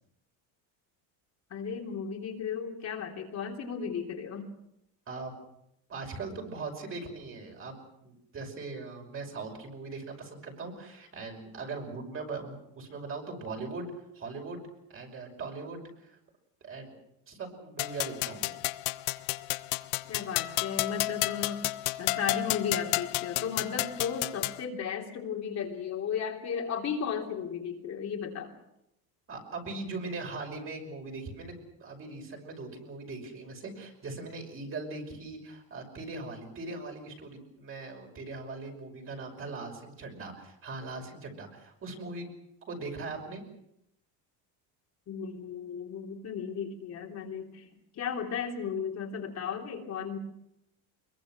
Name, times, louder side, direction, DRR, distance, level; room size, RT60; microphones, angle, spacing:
voice 1, 1.5-4.5 20.1-21.6 22.0-28.5 45.1-50.2, left 7 dB, 40° left, 1 dB, 3.4 m, -35 dB
voice 2, 5.9-14.6 14.9-16.2 16.6-17.0 17.3-18.5 29.3-42.3 42.7-43.4, right 3 dB, 30° right, 3 dB, 5.7 m, -40 dB
sound 1, 17.8-24.6, left 20 dB, 85° left, 0.9 m, -32 dB
24.0 x 22.5 x 6.2 m, 0.81 s
cardioid pair, 140°, 42 cm